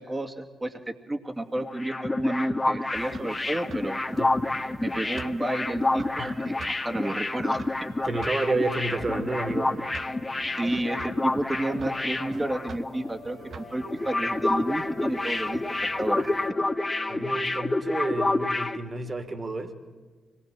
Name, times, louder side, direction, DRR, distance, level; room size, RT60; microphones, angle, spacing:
voice 1, 0.0-4.0 4.8-6.1 6.4-7.6 10.6-16.6, right 1 dB, 20° right, 5 dB, 2.2 m, -31 dB
sound 1, 1.5-13.1 13.3-13.5 13.8-18.8, left 2 dB, 25° left, 1.7 m, -28 dB
sound 2, 3.0-16.5, right 6 dB, 55° right, 1.1 m, -46 dB
voice 2, 8.0-9.7 17.1-19.7, right 2 dB, 40° right, 8 dB, 3.0 m, -30 dB
sound 3, 8.1-17.6, left 5 dB, 55° left, 1.4 m, -48 dB
25.0 x 20.0 x 7.5 m, 1.4 s
hypercardioid pair, 40°, 0 cm